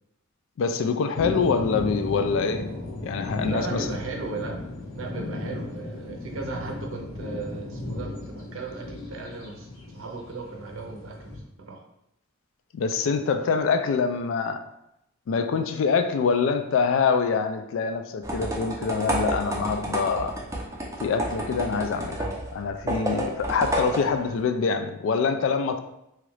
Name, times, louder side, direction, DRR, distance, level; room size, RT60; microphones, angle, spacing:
voice 1, 0.6-2.7 3.0-4.0 12.7-14.6 15.3-20.4 21.0-25.8, left 5 dB, 70° left, 8 dB, 0.3 m, -25 dB
sound 1, 1.1-11.4, left 2 dB, 85° left, 0.8 m, -35 dB
voice 2, 3.4-4.6 4.9-11.3 11.6-11.8, right 3 dB, 75° right, 0 dB, 0.6 m, -36 dB
sound 2, 18.2-24.4, right 1 dB, 15° right, 0.4 m, -30 dB
2.9 x 2.4 x 3.1 m, 0.83 s
head